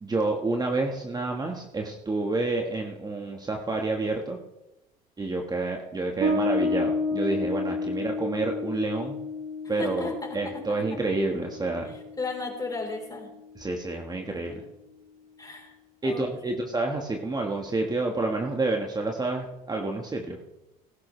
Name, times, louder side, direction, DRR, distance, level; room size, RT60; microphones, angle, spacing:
voice 1, 0.0-4.4 5.2-9.2 9.7-11.9 13.5-14.6 16.0-20.4, right 2 dB, 20° right, 2 dB, 1.5 m, -29 dB
Bass guitar, 6.2-13.4, left 2 dB, 60° right, 5.8 m, -31 dB
voice 2, 9.8-10.6 10.9-11.0 12.2-13.3 14.3-14.4 15.4-15.7 16.0-16.6, left 3 dB, 20° left, 1 dB, 4.0 m, -35 dB
18.5 x 11.5 x 3.3 m, 0.92 s
supercardioid pair, 85°, 18 cm